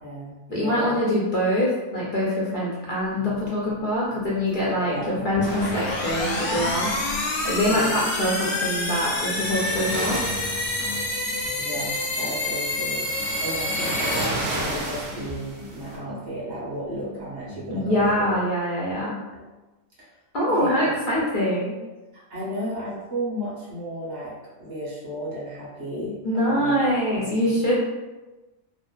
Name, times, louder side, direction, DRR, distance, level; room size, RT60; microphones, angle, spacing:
voice 1, 0.0-0.9 4.9-5.2 7.7-8.0 11.5-18.4 19.3-19.4 20.0-20.1 20.5-20.9 22.1-24.3 24.6-27.6, right 1 dB, 35° right, -7 dB, 0.9 m, -34 dB
voice 2, 0.5-7.0 7.4-10.2 17.7-19.2 20.3-21.8 26.2-27.8, equal, 60° left, -6 dB, 0.5 m, -24 dB
sound 1, 3.1-18.6, left 3 dB, 20° right, 0.3 m, -41 dB
sound 2, 5.3-15.0, left 2 dB, 80° left, 1.0 m, -28 dB
sound 3, 5.4-16.0, right 1 dB, 70° right, 0.8 m, -35 dB
2.7 x 2.1 x 2.3 m, 1.1 s
omnidirectional pair, 1.4 m